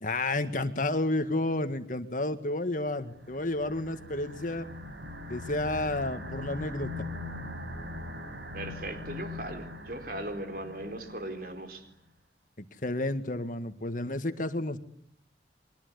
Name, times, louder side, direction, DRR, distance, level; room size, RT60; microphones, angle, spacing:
voice 1, 0.0-4.7 5.3-7.1 12.6-14.8, left 2 dB, 50° left, 9 dB, 1.8 m, -31 dB
sound 1, 3.0-11.6, left 1 dB, 85° right, 5.2 m, -41 dB
voice 2, 8.5-11.8, right 1 dB, 55° right, 6 dB, 4.2 m, -38 dB
30.0 x 24.0 x 8.2 m, 0.68 s
head